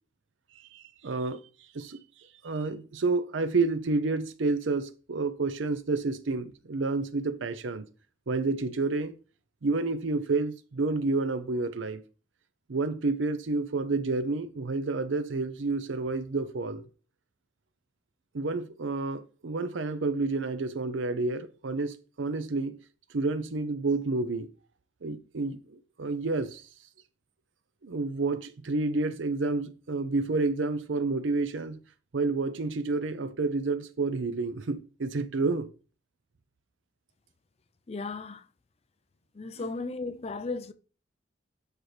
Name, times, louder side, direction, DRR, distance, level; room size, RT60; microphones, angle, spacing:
voice 1, 0.6-1.4 1.7-2.0 2.4-7.9 8.3-9.2 9.6-12.0 12.7-16.9 18.3-22.8 23.1-24.5 25.0-26.6 27.8-31.8 32.1-35.7 39.6-39.7, right 3 dB, 80° right, 0.6 m, -29 dB
voice 2, 37.9-38.4 39.4-40.7, left 3 dB, 35° left, 0.5 m, -35 dB
8.7 x 4.5 x 3.3 m
head